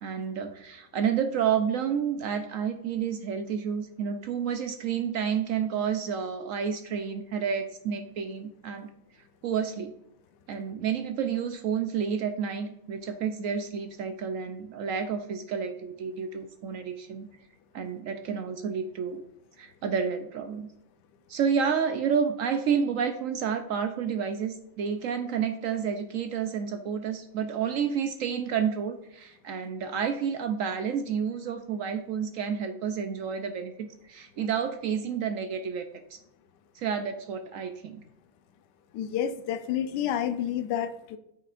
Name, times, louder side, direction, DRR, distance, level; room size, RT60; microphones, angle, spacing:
voice 1, 0.0-8.9 9.4-9.9 10.5-17.3 17.7-19.2 19.6-20.7 21.3-36.2 36.7-38.0, right 7 dB, 75° right, 7 dB, 0.7 m, -30 dB
voice 2, 38.9-41.2, left 9 dB, 80° left, 10 dB, 1.2 m, -29 dB
7.7 x 6.1 x 2.4 m, 0.79 s
omnidirectional pair, 1.9 m